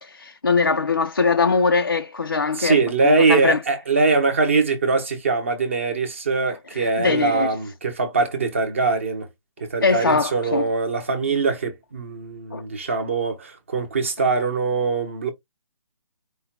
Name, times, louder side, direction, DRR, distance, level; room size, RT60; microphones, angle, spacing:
voice 1, 0.0-3.6 6.7-7.5 9.8-10.7 12.5-12.6, left 4 dB, 35° left, 0.4 m, -22 dB
voice 2, 2.5-9.3 9.6-15.3, right 4 dB, 20° right, 0.8 m, -22 dB
4.9 x 2.2 x 4.4 m
hypercardioid pair, 180°, 18 cm